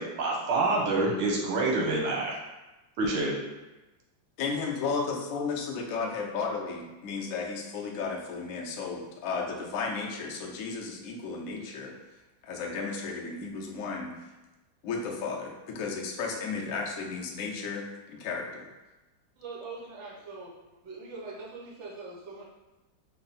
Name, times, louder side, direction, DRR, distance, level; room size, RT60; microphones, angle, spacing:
voice 1, 0.0-2.4 3.0-3.4, right 2 dB, 85° right, -2 dB, 1.7 m, -27 dB
voice 2, 4.4-11.9 12.4-14.1 14.8-18.7, left 4 dB, 85° left, -1 dB, 0.7 m, -34 dB
voice 3, 19.4-20.5 20.8-22.4, right 3 dB, 70° right, -4 dB, 0.6 m, -42 dB
4.3 x 2.0 x 4.0 m, 1.1 s
omnidirectional pair, 2.2 m